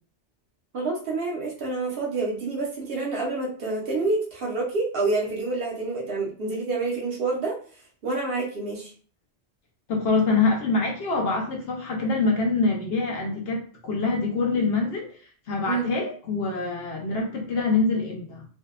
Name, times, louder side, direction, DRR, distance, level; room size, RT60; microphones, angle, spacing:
voice 1, 0.7-7.6 8.0-8.9 15.7-15.9, right 3 dB, 60° right, -3 dB, 0.9 m, -28 dB
voice 2, 9.9-15.2 15.5-18.5, left 3 dB, 65° left, 0 dB, 0.8 m, -25 dB
2.7 x 2.1 x 2.3 m, 0.43 s
omnidirectional pair, 1.2 m